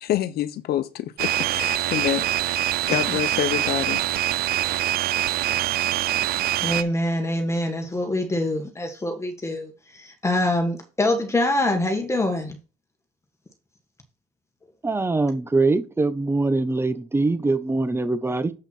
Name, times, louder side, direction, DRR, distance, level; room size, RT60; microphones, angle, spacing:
voice 1, 0.0-4.0, left 12 dB, 65° left, 1.0 m, -27 dB
sound 1, 1.2-6.8, right 13 dB, 65° right, 0.5 m, -24 dB
voice 2, 6.6-12.6, left 1 dB, 15° left, 1.7 m, -25 dB
voice 3, 14.8-18.5, right 3 dB, 15° right, 0.9 m, -23 dB
7.7 x 5.7 x 4.2 m
cardioid pair, 110°, 17 cm